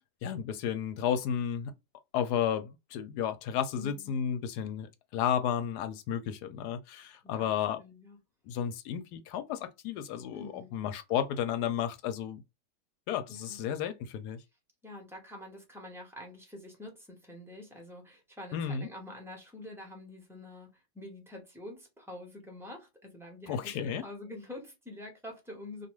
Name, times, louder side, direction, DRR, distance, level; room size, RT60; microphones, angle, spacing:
voice 1, 0.2-1.7 2.1-7.8 8.5-12.4 13.1-14.4 18.5-18.9 23.5-24.0, left 9 dB, 75° left, 1.1 m, -32 dB
voice 2, 3.7-4.1 7.2-8.2 10.3-10.7 13.3-13.6 14.8-25.9, left 1 dB, 5° right, 0.4 m, -46 dB
2.6 x 2.4 x 3.0 m
omnidirectional pair, 1.8 m